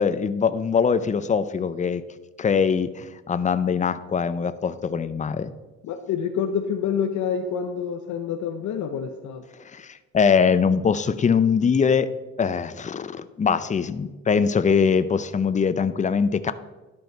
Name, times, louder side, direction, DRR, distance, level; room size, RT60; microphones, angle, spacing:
voice 1, 0.0-2.0 2.4-5.5 9.7-12.1 12.4-16.5, left 6 dB, 25° left, 13 dB, 0.5 m, -22 dB
voice 2, 5.8-9.4, left 7 dB, 70° left, 5 dB, 0.7 m, -27 dB
11.0 x 5.3 x 4.5 m, 1.2 s
cardioid pair, 90°, 30 cm